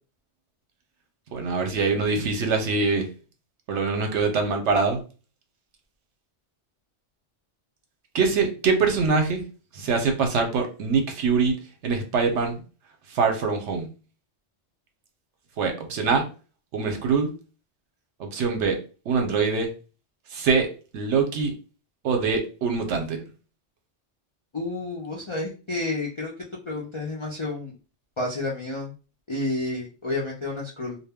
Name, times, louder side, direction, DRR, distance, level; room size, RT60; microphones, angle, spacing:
voice 1, 1.3-3.1 3.7-5.0 8.1-9.4 9.7-11.6 11.8-12.6 13.1-13.9 15.6-16.2 16.7-17.3 18.2-18.8 19.1-19.7 20.3-20.7 20.9-21.5 22.0-23.2, right 4 dB, 75° right, 4 dB, 0.9 m, -23 dB
voice 2, 24.5-26.3 26.7-27.7 28.2-28.9 29.3-31.0, left 2 dB, 50° left, -4 dB, 0.3 m, -30 dB
2.2 x 2.1 x 3.4 m, 0.35 s
omnidirectional pair, 1.2 m